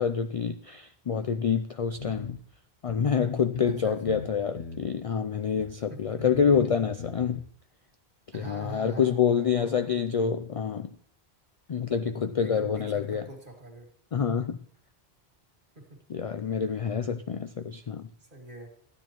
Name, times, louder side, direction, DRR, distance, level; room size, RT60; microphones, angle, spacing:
voice 1, 0.0-2.3 2.8-7.4 8.3-10.9 11.7-13.3 14.1-14.6 16.1-18.1, left 7 dB, 55° left, 10 dB, 0.4 m, -27 dB
sound 1, 1.9-2.4 2.9-3.0 3.5-3.8 4.1-4.9 5.6-5.7 6.2-7.4, left 4 dB, 75° left, 1.3 m, -40 dB
voice 2, 3.6-4.2 5.9-6.3 8.3-9.9 12.4-13.9 15.7-16.0 16.7-16.8 18.2-18.7, right 2 dB, 50° right, 1 dB, 2.4 m, -43 dB
13.5 x 9.7 x 3.0 m, 0.63 s
omnidirectional pair, 1.1 m